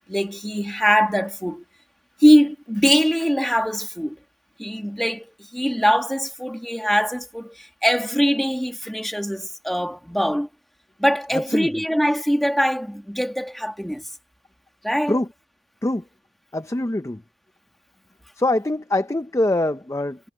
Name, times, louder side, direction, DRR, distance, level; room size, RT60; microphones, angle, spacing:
voice 1, 0.1-1.6 2.2-4.2 4.6-10.5 11.0-14.1 14.8-15.2, equal, ahead, 1.7 m, -22 dB
voice 2, 11.3-11.7 15.1-15.3 15.8-16.0 16.5-17.2 18.4-20.2, left 1 dB, 15° left, 0.5 m, -23 dB
head